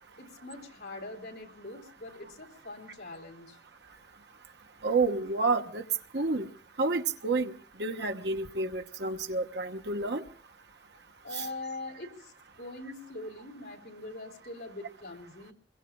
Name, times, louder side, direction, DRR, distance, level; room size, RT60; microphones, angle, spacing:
voice 1, 0.2-3.6 11.2-15.5, left 2 dB, 70° left, 0 dB, 3.4 m, -43 dB
voice 2, 4.8-5.8 6.1-6.5 6.8-7.5 7.8-10.3 11.3-11.5, right 3 dB, 70° right, 6 dB, 1.2 m, -29 dB
27.0 x 22.5 x 2.3 m, 0.44 s
head